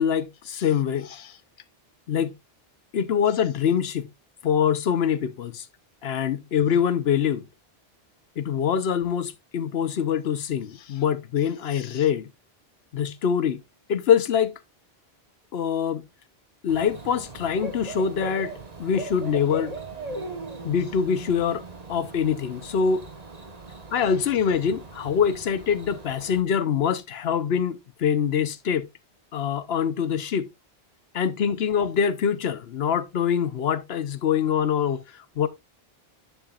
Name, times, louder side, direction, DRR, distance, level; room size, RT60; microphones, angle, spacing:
voice 1, 0.0-1.3 2.1-2.3 2.9-4.1 4.4-5.6 6.0-7.4 8.4-12.2 12.9-13.6 13.9-14.5 15.5-16.0 16.6-18.5 18.8-19.7 20.6-21.6 21.9-23.0 23.9-28.9 29.3-30.4 31.1-35.0 35.4-35.5, left 7 dB, 75° left, 1.0 m, -24 dB
Bird / Cricket, 16.7-26.4, right 3 dB, 40° right, 1.3 m, -39 dB
10.5 x 6.8 x 2.4 m
omnidirectional pair, 1.1 m